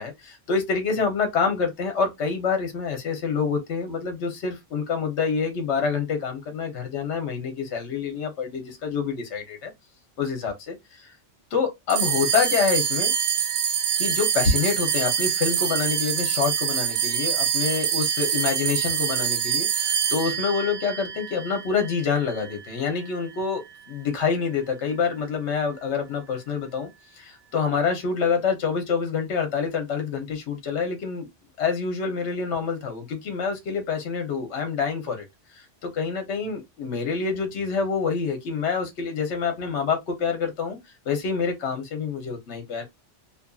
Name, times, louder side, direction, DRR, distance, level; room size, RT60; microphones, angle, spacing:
voice 1, 0.0-9.7 10.2-11.1 11.5-13.1 14.0-23.6 23.9-26.9 27.2-31.3 31.6-35.3 35.5-40.8 41.1-42.8, left 5 dB, 65° left, 1.1 m, -27 dB
sound 1, 11.9-22.5, right 8 dB, 90° right, 1.0 m, -25 dB
2.8 x 2.5 x 2.3 m
omnidirectional pair, 1.3 m